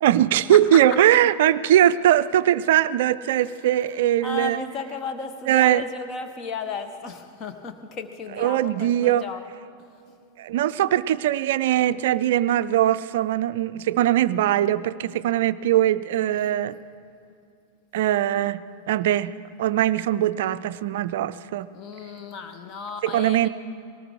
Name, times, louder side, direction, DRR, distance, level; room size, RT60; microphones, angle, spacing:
voice 1, 0.0-4.6 5.5-5.8 8.4-9.2 10.4-16.8 17.9-18.6 18.9-19.3 19.6-21.7 23.0-23.5, right 12 dB, 55° right, 15 dB, 0.4 m, -21 dB
voice 2, 4.2-9.4 21.7-23.5, left 4 dB, 35° left, 7 dB, 0.9 m, -34 dB
19.5 x 18.0 x 3.7 m, 2.5 s
figure-of-eight pair, 90°, 0 cm